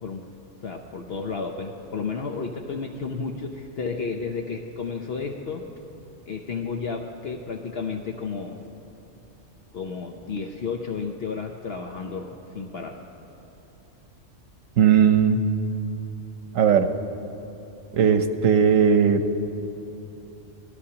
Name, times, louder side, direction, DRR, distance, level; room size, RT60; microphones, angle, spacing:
voice 1, 0.6-5.7 6.3-8.6 9.7-13.0, left 5 dB, 55° left, 2 dB, 0.9 m, -32 dB
voice 2, 14.8-15.5 16.5-16.9 17.9-19.4, right 7 dB, 85° right, 8 dB, 1.2 m, -18 dB
25.0 x 19.0 x 2.9 m, 3.0 s
omnidirectional pair, 1.3 m